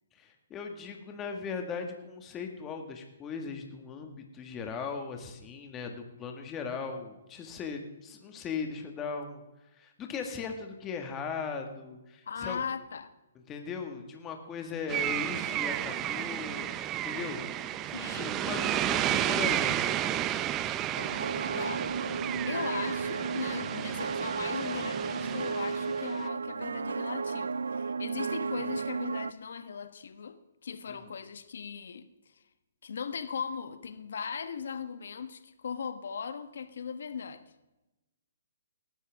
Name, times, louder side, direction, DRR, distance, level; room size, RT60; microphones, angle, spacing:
voice 1, 0.1-9.4 9.7-12.6 13.5-16.7 17.0-17.4 18.1-20.3 30.9-31.0, left 5 dB, 20° left, 1.8 m, -38 dB
voice 2, 12.3-13.1 17.9-18.5 21.6-21.9 22.5-32.1 32.8-37.4, left 6 dB, 70° left, 1.3 m, -38 dB
sound 1, 14.9-26.2, right 12 dB, 20° right, 0.6 m, -32 dB
sound 2, 20.9-29.3, right 5 dB, 85° right, 0.3 m, -33 dB
18.5 x 12.5 x 3.6 m
hypercardioid pair, 145°, 0 cm